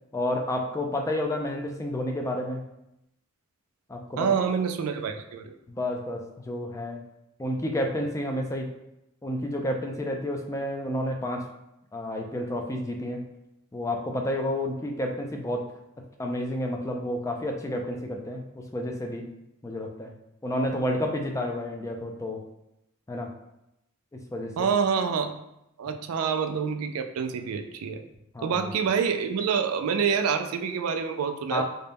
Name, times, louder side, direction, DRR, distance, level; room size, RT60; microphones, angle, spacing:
voice 1, 0.1-2.6 3.9-4.3 5.7-7.0 7.4-8.7 9.2-11.4 11.9-13.2 13.7-15.7 16.2-19.3 19.6-20.1 20.4-22.4 23.1-23.3 24.1-24.7 28.3-28.6 31.5-31.6, left 1 dB, 15° left, 3 dB, 0.3 m, -30 dB
voice 2, 4.2-5.5 24.6-25.3 25.8-28.0 28.4-31.6, right 6 dB, 75° right, 7 dB, 0.3 m, -27 dB
3.9 x 2.2 x 3.4 m, 0.84 s
head